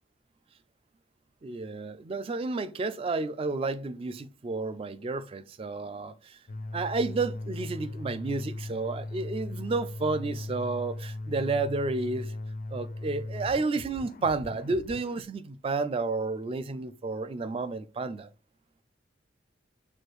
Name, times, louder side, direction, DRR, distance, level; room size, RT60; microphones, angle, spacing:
voice 1, 1.4-6.4 6.7-12.3 12.7-18.3, right 3 dB, 30° right, 0.3 m, -31 dB
sound 1, 6.5-15.2, left 2 dB, 45° left, 0.4 m, -38 dB
6.3 x 2.5 x 3.1 m
head